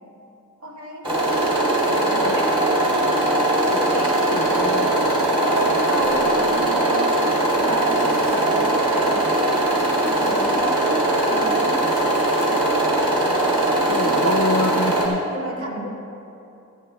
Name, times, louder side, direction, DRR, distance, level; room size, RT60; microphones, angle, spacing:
voice 1, 0.6-1.1 2.3-3.4 3.7-4.0 5.5-7.2 7.6-9.4 10.2-11.9 14.0-14.6 15.3-15.9, right 1 dB, 85° right, -3 dB, 2.1 m, -31 dB
sound 1, 1.0-15.1, right 1 dB, 25° right, 2.8 m, -20 dB
voice 2, 1.9-2.4 3.7-4.9 13.9-15.3, left 3 dB, 65° left, 10 dB, 0.5 m, -27 dB
27.5 x 9.3 x 2.3 m, 2.8 s
head